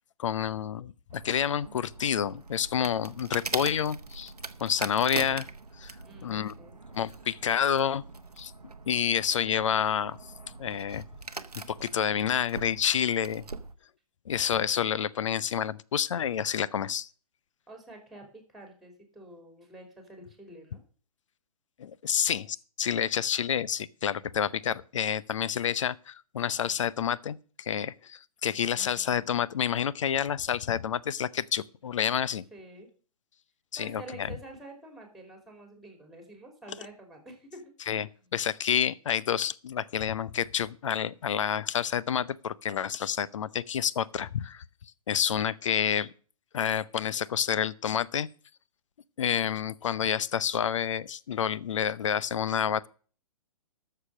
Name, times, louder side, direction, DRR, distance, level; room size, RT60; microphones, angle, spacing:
voice 1, 0.2-4.3 4.6-5.5 5.8-5.9 6.2-6.5 6.9-8.0 8.4-8.5 8.9-10.2 10.6-11.0 11.7-13.4 14.3-17.1 21.8-32.4 33.7-34.4 37.9-44.6 45.1-46.1 46.5-48.3 49.2-52.9, left 8 dB, 55° left, 0.6 m, -29 dB
sound 1, 1.1-13.7, right 3 dB, 85° right, 0.9 m, -42 dB
voice 2, 6.0-6.8 17.7-20.8 32.5-32.9 33.8-37.7 38.2-38.3, right 2 dB, ahead, 2.9 m, -48 dB
12.5 x 6.9 x 6.4 m
figure-of-eight pair, 125°, 19 cm